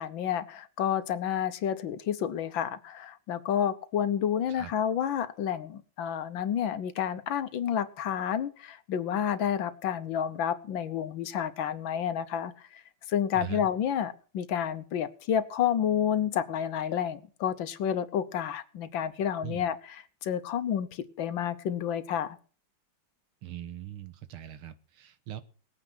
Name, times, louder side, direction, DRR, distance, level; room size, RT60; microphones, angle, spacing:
voice 1, 0.0-12.5 13.1-22.4, left 9 dB, 70° left, 1.6 m, -30 dB
voice 2, 13.3-13.7 19.4-19.6 23.4-25.4, right 12 dB, 80° right, 1.9 m, -41 dB
19.0 x 9.0 x 6.1 m
omnidirectional pair, 2.3 m